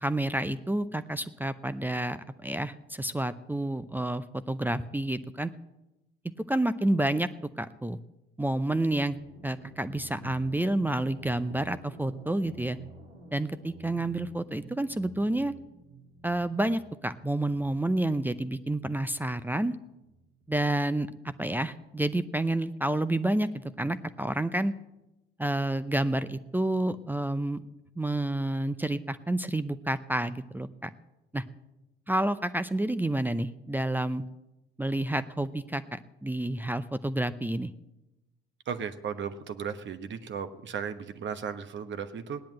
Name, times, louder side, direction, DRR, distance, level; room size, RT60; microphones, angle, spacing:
voice 1, 0.0-5.5 6.5-7.3 7.6-8.0 8.4-9.2 9.4-12.8 13.3-15.5 16.2-19.7 20.5-23.5 23.8-24.7 25.4-27.6 28.0-30.9 31.3-31.4 32.1-34.2 34.8-37.7, right 1 dB, 5° right, 13 dB, 0.7 m, -29 dB
sound 1, 9.1-20.6, right 3 dB, 90° right, 2.1 m, -50 dB
voice 2, 38.7-42.4, right 7 dB, 40° right, 10 dB, 1.2 m, -35 dB
17.5 x 10.5 x 7.6 m, 0.96 s
figure-of-eight pair, 60°, 29 cm